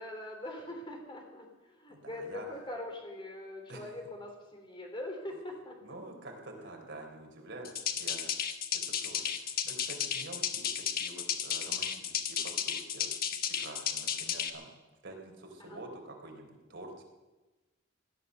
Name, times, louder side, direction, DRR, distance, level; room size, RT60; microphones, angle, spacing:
voice 1, 0.0-5.9 6.6-6.7 12.4-12.6 15.6-15.8, left 1 dB, 25° left, 2 dB, 3.5 m, -43 dB
voice 2, 1.9-2.5 3.7-3.9 5.8-13.1 13.4-14.7 15.0-17.0, right 2 dB, 60° right, 2 dB, 3.7 m, -48 dB
sound 1, 7.6-14.5, left 8 dB, 45° left, 1.2 m, -33 dB
18.0 x 11.5 x 6.7 m, 1.2 s
head